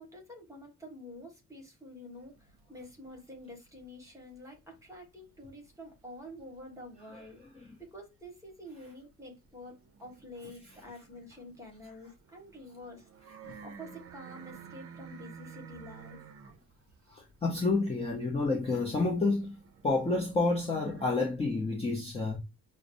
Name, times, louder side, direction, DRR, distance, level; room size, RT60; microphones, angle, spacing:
voice 1, 0.0-7.4 7.8-13.1 13.6-16.2, left 1 dB, 10° right, 1.4 m, -48 dB
sound 1, 2.2-5.1 5.4-8.0 8.4-21.1, right 7 dB, 45° right, 0.6 m, -53 dB
voice 2, 17.1-22.4, left 3 dB, 20° left, 0.7 m, -30 dB
6.3 x 2.1 x 2.5 m
wide cardioid pair, 175°, 31 cm